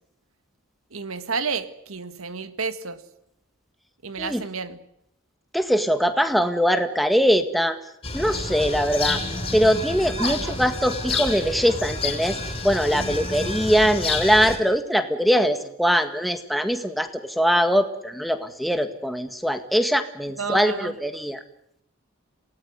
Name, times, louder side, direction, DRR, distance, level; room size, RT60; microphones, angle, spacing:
voice 1, 0.9-3.0 4.0-4.8 10.2-10.6 20.4-20.9, right 5 dB, 85° right, 12 dB, 1.7 m, -31 dB
voice 2, 5.5-7.8 8.1-9.2 9.5-21.4, equal, ahead, 8 dB, 1.8 m, -22 dB
sound 1, 8.0-14.6, left 3 dB, 25° left, 5.3 m, -29 dB
27.5 x 18.5 x 9.5 m, 0.78 s
head